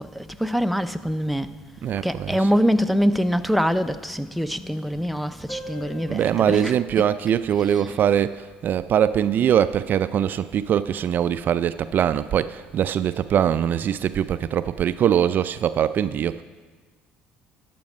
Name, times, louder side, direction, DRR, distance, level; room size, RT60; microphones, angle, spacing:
voice 1, 0.0-1.5 2.0-7.1 7.6-7.9, equal, ahead, 0.5 m, -24 dB
voice 2, 1.8-2.5 6.1-16.4, right 9 dB, 50° right, 0.4 m, -22 dB
Piano, 5.5-10.8 11.1-11.2 11.4-11.6 11.9-12.0 12.8-12.9, left 1 dB, 55° left, 2.5 m, -45 dB
12.0 x 7.7 x 5.3 m
hypercardioid pair, 75°, 4 cm